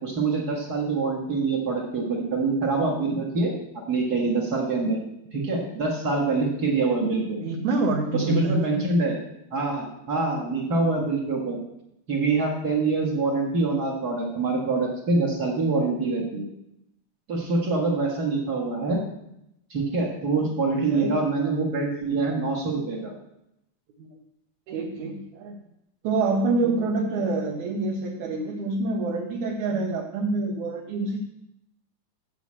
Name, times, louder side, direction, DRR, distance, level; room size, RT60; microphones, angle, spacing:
voice 1, 0.0-3.5 3.9-5.0 5.3-7.4 8.1-9.2 9.5-11.6 12.1-16.5 17.3-19.0 19.7-23.1, right 3 dB, 40° right, -2 dB, 1.5 m, -25 dB
voice 2, 7.4-8.9 20.7-21.2 24.0-24.2 24.7-25.6 26.0-31.2, right 3 dB, 70° right, 2 dB, 2.1 m, -27 dB
7.5 x 6.1 x 7.4 m, 0.81 s
omnidirectional pair, 3.8 m